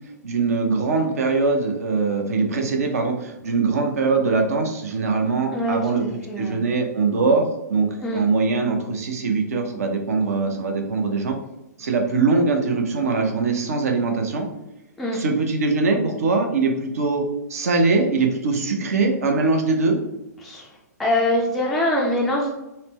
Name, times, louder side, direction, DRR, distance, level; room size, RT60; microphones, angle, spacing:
voice 1, 0.2-6.0 6.4-11.4 11.8-14.5 15.1-17.2 17.5-20.0, right 4 dB, 55° right, 3 dB, 0.7 m, -22 dB
voice 2, 5.5-6.6 8.0-8.2 15.0-15.2 20.4-22.5, left 1 dB, ahead, -4 dB, 0.4 m, -24 dB
4.1 x 2.1 x 3.0 m, 0.93 s
figure-of-eight pair, 115°, 9 cm